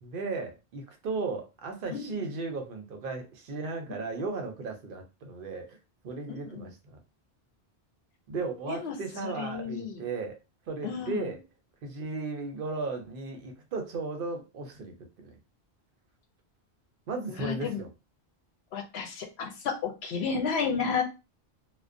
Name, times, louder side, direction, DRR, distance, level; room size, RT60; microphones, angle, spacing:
voice 1, 0.0-5.8 6.0-7.0 8.3-10.4 10.7-11.4 11.8-15.4 17.1-17.9, right 3 dB, 65° right, 4 dB, 0.7 m, -35 dB
voice 2, 6.3-6.7 8.7-8.9 9.2-10.1 10.8-11.2 17.3-17.8 18.7-21.0, left 6 dB, 80° left, 4 dB, 0.9 m, -32 dB
2.4 x 2.1 x 2.4 m, 0.28 s
omnidirectional pair, 1.1 m